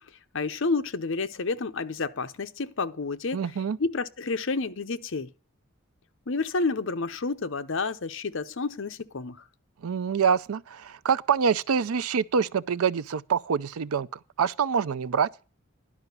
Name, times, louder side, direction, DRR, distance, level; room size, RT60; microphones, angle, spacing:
voice 1, 0.3-3.4 3.8-5.3 6.3-9.4, left 3 dB, 65° left, 0.7 m, -30 dB
voice 2, 3.3-3.8 9.8-14.1 14.4-15.3, right 6 dB, 85° right, 0.5 m, -25 dB
11.0 x 4.9 x 8.1 m
head